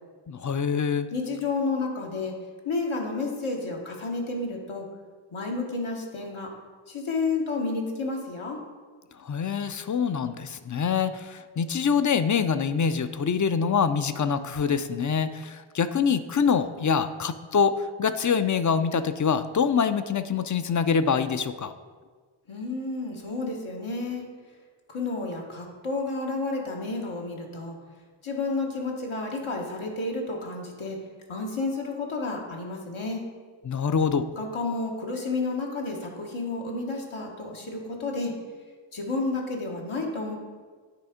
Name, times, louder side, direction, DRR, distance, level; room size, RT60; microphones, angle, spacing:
voice 1, 0.3-1.1 9.2-21.7 33.6-34.3, left 6 dB, 40° left, 11 dB, 0.4 m, -25 dB
voice 2, 1.1-2.3 2.6-4.9 5.3-6.5 6.9-8.6 22.5-24.2 24.9-27.8 28.2-31.0 31.3-33.2 34.3-38.3 38.9-40.4, left 3 dB, 80° left, 0 dB, 1.2 m, -31 dB
9.5 x 3.5 x 5.0 m, 1.5 s
wide cardioid pair, 70°, 48 cm